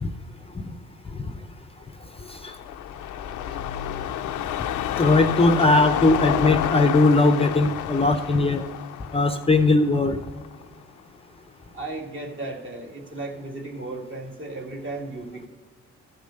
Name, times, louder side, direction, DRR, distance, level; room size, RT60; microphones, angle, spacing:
sound 1, 2.2-10.6 11.0-11.1, left 11 dB, 85° left, 0.6 m, -29 dB
voice 1, 5.0-8.6 9.1-10.2, left 2 dB, 20° left, 7 dB, 0.6 m, -19 dB
voice 2, 11.7-15.5, right 2 dB, 40° right, 1 dB, 2.1 m, -35 dB
14.0 x 5.2 x 6.4 m, 1.4 s
cardioid pair, 90°, 30 cm